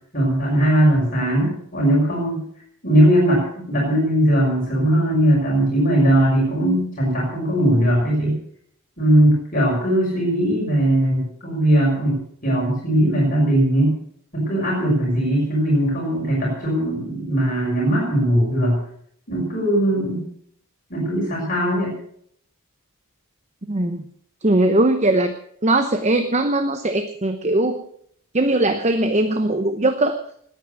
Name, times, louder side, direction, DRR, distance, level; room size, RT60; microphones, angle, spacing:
voice 1, 0.1-2.4 2.8-8.4 9.0-13.9 14.3-18.8 19.3-20.2 20.9-21.9, right 1 dB, 35° left, -4 dB, 5.9 m, -19 dB
voice 2, 23.7-24.0 24.4-25.3 25.6-27.8 28.3-30.2, right 2 dB, 30° right, 8 dB, 0.9 m, -20 dB
20.5 x 9.2 x 6.6 m, 0.66 s
head